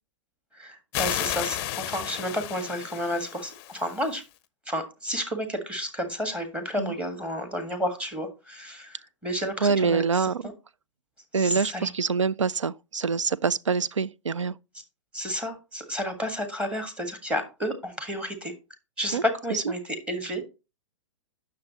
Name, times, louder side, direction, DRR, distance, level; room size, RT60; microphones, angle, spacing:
voice 1, 0.5-4.2 4.7-10.5 11.3-11.9 15.1-18.5 19.0-20.4, equal, 5° right, 1.6 m, -31 dB
sound 1, 0.9-4.2, left 13 dB, 25° left, 0.6 m, -33 dB
voice 2, 9.6-10.4 11.3-14.5 19.1-19.2 19.5-19.6, right 5 dB, 75° right, 0.5 m, -25 dB
9.5 x 6.6 x 2.9 m
figure-of-eight pair, 115°, 16 cm